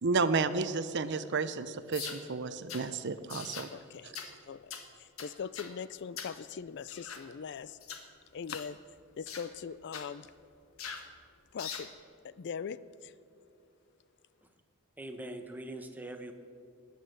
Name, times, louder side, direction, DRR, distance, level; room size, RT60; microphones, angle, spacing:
voice 1, 0.0-3.7, right 4 dB, 55° right, 0.6 m, -31 dB
sound 1, 1.9-2.2 2.7-2.9 3.3-3.7 4.1-4.3 4.7-4.9 5.2-5.7 6.2-6.4 6.9-7.2 7.8-8.0 8.5-8.7 9.3-9.5 9.9-10.1 10.8-11.1 11.6-11.9, left 7 dB, 80° left, 1.4 m, -42 dB
voice 2, 3.7-4.1 4.5-7.8 8.3-8.8 9.1-10.3 11.5-11.9 12.2-13.1, left 6 dB, 55° left, 0.4 m, -41 dB
voice 3, 15.0-16.3, right 1 dB, 10° right, 1.1 m, -42 dB
19.5 x 9.3 x 6.7 m
head